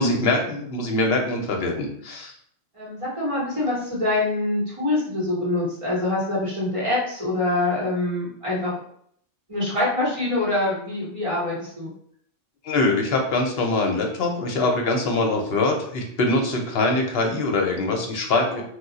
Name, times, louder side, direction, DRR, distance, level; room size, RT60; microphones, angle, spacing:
voice 1, 0.0-2.3 12.6-18.6, left 2 dB, 60° left, 1 dB, 0.8 m, -23 dB
voice 2, 2.7-8.7 9.5-11.9 14.8-14.9 18.5-18.6, left 2 dB, 30° right, -6 dB, 1.1 m, -25 dB
2.4 x 2.3 x 3.9 m, 0.65 s
omnidirectional pair, 1.3 m